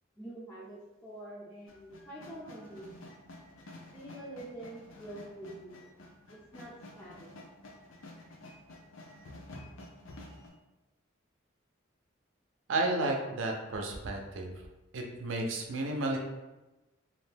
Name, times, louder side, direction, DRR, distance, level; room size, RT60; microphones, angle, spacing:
voice 1, 0.2-3.1 3.9-5.9 6.3-7.3, right 1 dB, 15° left, -9 dB, 0.4 m, -46 dB
sound 1, 1.7-10.5, left 1 dB, 80° left, 0.5 m, -50 dB
voice 2, 12.7-14.5 14.9-16.2, right 2 dB, 75° right, 1 dB, 0.5 m, -32 dB
2.5 x 2.1 x 3.2 m, 1.1 s
head